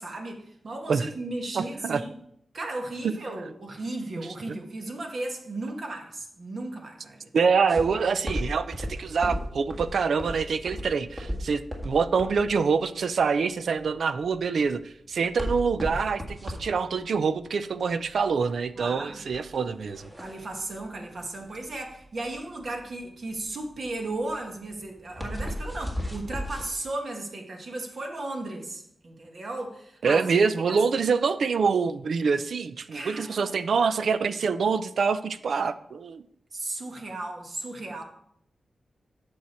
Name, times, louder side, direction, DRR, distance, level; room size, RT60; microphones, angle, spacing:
voice 1, 0.0-2.2 2.5-7.3 18.8-19.2 20.2-30.2 30.7-30.8 32.9-33.7 36.5-38.0, right 2 dB, 55° right, 2 dB, 1.6 m, -35 dB
voice 2, 1.5-2.0 4.2-4.6 7.3-20.1 30.0-36.2, right 5 dB, 70° right, 13 dB, 0.5 m, -25 dB
sound 1, 7.7-26.7, equal, 20° right, 1.7 m, -36 dB
8.5 x 6.4 x 4.4 m, 0.72 s
wide cardioid pair, 115°, 0 cm